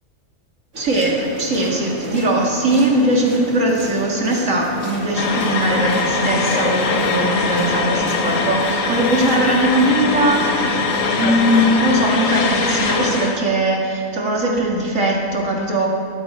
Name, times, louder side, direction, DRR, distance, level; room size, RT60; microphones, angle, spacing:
sound 1, 0.7-11.7, equal, 85° right, 3.4 m, -34 dB
voice 1, 0.8-10.8 11.1-15.9, right 1 dB, 65° right, -2 dB, 2.4 m, -20 dB
sound 2, 1.2-9.7, right 1 dB, 35° right, 2.1 m, -37 dB
sound 3, 5.2-13.4, left 3 dB, 70° left, 1.4 m, -21 dB
20.5 x 9.5 x 4.3 m, 2.4 s
omnidirectional pair, 1.4 m